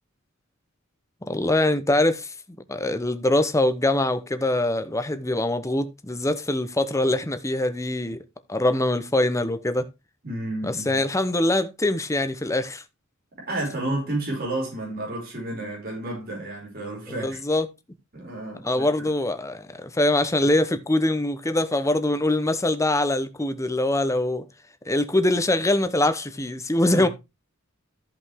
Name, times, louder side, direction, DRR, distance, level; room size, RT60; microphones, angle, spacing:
voice 1, 1.3-2.3 2.7-8.2 8.5-9.9 10.6-12.8 17.2-17.7 18.6-24.4 24.9-27.1, left 1 dB, 15° left, 0.8 m, -23 dB
voice 2, 10.2-11.0 13.5-17.4 18.1-19.1 26.9-27.1, right 1 dB, 45° right, 5.2 m, -31 dB
14.0 x 5.3 x 3.6 m
head